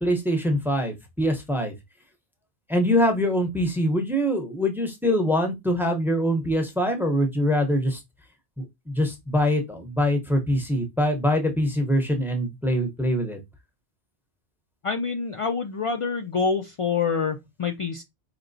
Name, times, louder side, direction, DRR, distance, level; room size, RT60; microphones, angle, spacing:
voice 1, 0.0-1.7 2.7-8.0 8.6-13.4, equal, ahead, 0.6 m, -24 dB
voice 2, 14.8-18.0, left 5 dB, 60° left, 0.3 m, -26 dB
4.5 x 2.9 x 2.6 m
omnidirectional pair, 1.1 m